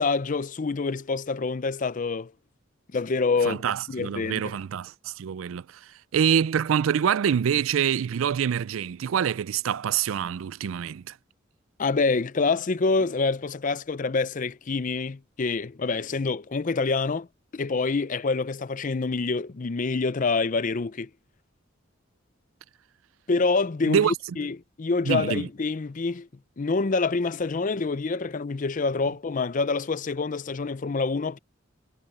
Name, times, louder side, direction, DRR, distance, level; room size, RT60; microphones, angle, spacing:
voice 1, 0.0-2.3 2.9-4.5 11.8-17.3 17.5-21.1 23.3-26.3 26.6-31.4, left 4 dB, 40° left, 0.5 m, -26 dB
voice 2, 3.5-5.7 6.1-11.1 23.9-24.1 25.1-25.5, right 8 dB, 90° right, 0.4 m, -25 dB
head